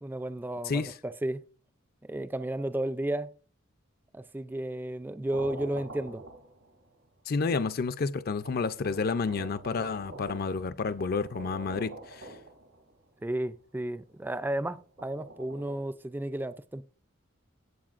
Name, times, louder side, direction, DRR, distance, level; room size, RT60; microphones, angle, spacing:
voice 1, 0.0-1.4 2.1-3.3 4.1-6.2 7.5-7.6 13.2-16.8, right 1 dB, 10° right, 0.3 m, -33 dB
sound 1, 5.3-6.9 7.7-7.8 8.4-13.0 14.8-15.8, right 2 dB, 85° right, 2.6 m, -45 dB
voice 2, 7.3-12.3, left 4 dB, 50° left, 0.5 m, -30 dB
16.0 x 7.9 x 2.5 m
head